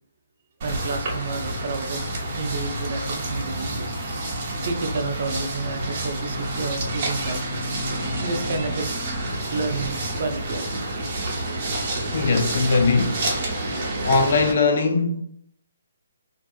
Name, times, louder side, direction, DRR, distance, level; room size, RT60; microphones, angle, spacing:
sound 1, 0.6-14.5, right 1 dB, 30° right, 0.9 m, -28 dB
voice 1, 0.6-2.0 2.3-3.9 4.6-7.4 8.2-8.9 9.5-10.8, right 3 dB, 50° right, 0.5 m, -30 dB
voice 2, 12.1-13.2 14.0-15.2, left 4 dB, 55° left, 0.4 m, -20 dB
2.6 x 2.3 x 2.4 m
hypercardioid pair, 165°, 0 cm